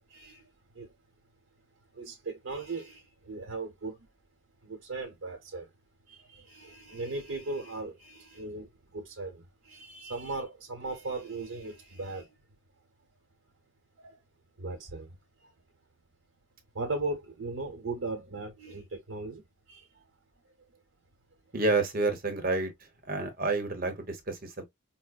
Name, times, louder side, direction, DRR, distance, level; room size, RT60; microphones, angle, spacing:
voice 1, 0.1-0.5 0.7-0.9 1.9-4.1 4.6-5.7 6.1-12.3 14.0-14.2 14.6-15.5 16.7-20.1, right 3 dB, 80° right, 0.9 m, -38 dB
voice 2, 21.5-22.7 23.1-24.7, right 3 dB, 45° right, 0.9 m, -29 dB
4.8 x 2.1 x 2.3 m
head